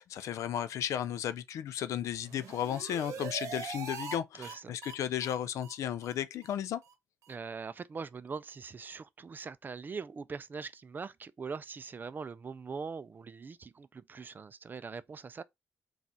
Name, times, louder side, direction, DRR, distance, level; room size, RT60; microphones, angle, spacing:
voice 1, 0.0-6.8, left 10 dB, 80° left, 0.4 m, -34 dB
sound 1, 2.1-4.2 4.4-4.5 4.8-4.9 5.2-5.3 5.6-5.7 6.0-6.1 6.4-6.5 6.8-6.9 7.2-7.3, right 5 dB, 85° right, 0.8 m, -42 dB
voice 2, 4.4-4.8 7.3-15.4, right 5 dB, 40° right, 0.4 m, -42 dB
4.0 x 2.4 x 4.2 m
cardioid pair, 75°, 5 cm